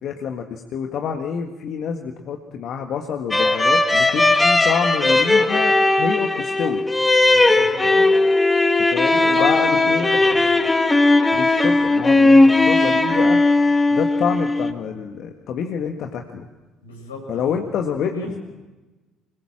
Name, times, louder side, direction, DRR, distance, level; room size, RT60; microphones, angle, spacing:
voice 1, 0.0-6.9 8.9-10.2 11.3-13.4 13.9-16.5 17.3-18.4, left 7 dB, 55° left, 4 dB, 1.7 m, -27 dB
sound 1, 3.3-14.7, left 2 dB, 15° left, 1.9 m, -17 dB
voice 2, 7.2-8.1 9.1-10.4 16.8-17.6 18.0-18.4, left 2 dB, 85° left, 1 dB, 5.9 m, -34 dB
25.0 x 21.0 x 7.4 m, 1.1 s
figure-of-eight pair, 55°, 0 cm